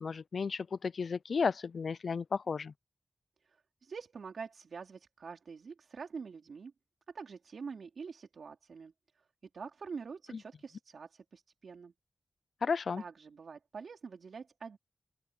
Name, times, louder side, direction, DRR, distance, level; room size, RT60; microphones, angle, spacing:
voice 1, 0.0-2.7 12.6-13.0, left 5 dB, 65° left, 0.4 m, -33 dB
voice 2, 3.4-6.7 7.1-9.3 9.5-11.9 13.0-14.8, right 5 dB, 75° right, 4.2 m, -46 dB
open air
wide cardioid pair, 150°, 0 cm